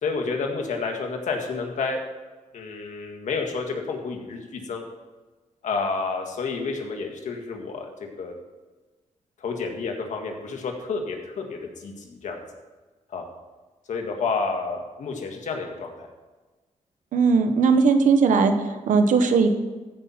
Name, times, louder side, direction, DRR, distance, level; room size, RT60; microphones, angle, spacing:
voice 1, 0.0-2.0 2.5-4.8 5.6-7.9 8.2-8.3 9.4-12.4 13.1-13.2 13.9-16.1, left 4 dB, 75° left, 3 dB, 1.7 m, -30 dB
voice 2, 17.1-19.5, right 4 dB, 85° right, 8 dB, 0.9 m, -19 dB
15.0 x 5.6 x 4.3 m, 1.2 s
cardioid pair, 90°, 13 cm